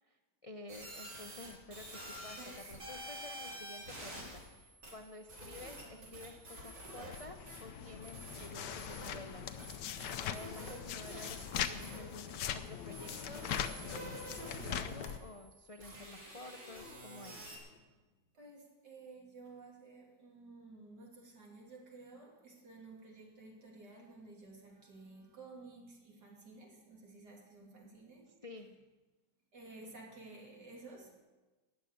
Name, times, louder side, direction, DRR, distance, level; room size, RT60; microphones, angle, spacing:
voice 1, 0.1-13.4 13.7-14.2 14.6-17.5 28.4-28.7, left 2 dB, 55° left, 5 dB, 0.3 m, -51 dB
sound 1, 0.7-17.6, right 1 dB, 90° right, 5.0 m, -49 dB
sound 2, 5.4-6.9 8.6-9.7 12.6-13.4 16.6-18.3, left 4 dB, 35° left, 1.3 m, -59 dB
sound 3, 7.1-15.2, left 9 dB, 80° left, 1.4 m, -41 dB
voice 2, 18.3-28.6 29.5-31.2, right 3 dB, 70° right, 0 dB, 3.2 m, -54 dB
14.5 x 7.7 x 9.3 m, 1.2 s
omnidirectional pair, 1.8 m